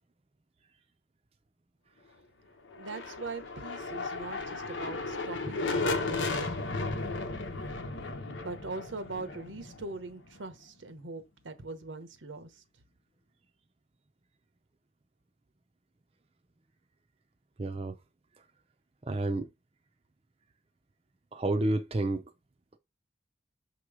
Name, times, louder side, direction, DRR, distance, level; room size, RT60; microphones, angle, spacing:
sound 1, 2.7-10.5, left 3 dB, 85° left, 1.0 m, -35 dB
voice 1, 2.7-6.6 8.4-12.6, right 3 dB, 85° right, 1.0 m, -41 dB
voice 2, 17.6-17.9 19.1-19.5 21.3-22.2, right 2 dB, 30° right, 0.6 m, -29 dB
6.8 x 3.0 x 4.9 m
head